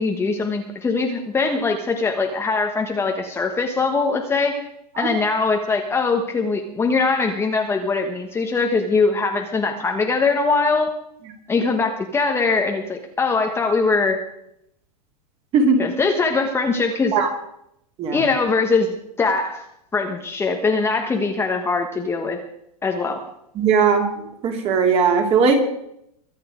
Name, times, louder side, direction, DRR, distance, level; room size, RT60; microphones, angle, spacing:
voice 1, 0.0-4.7 5.0-10.9 11.5-14.2 15.8-17.1 18.1-18.9 19.2-19.7 19.9-22.4 22.8-23.2, left 4 dB, 10° left, 3 dB, 1.2 m, -21 dB
voice 2, 23.6-24.1 24.4-25.6, right 5 dB, 30° right, 3 dB, 3.1 m, -18 dB
23.0 x 8.8 x 5.0 m, 0.76 s
supercardioid pair, 140°, 20 cm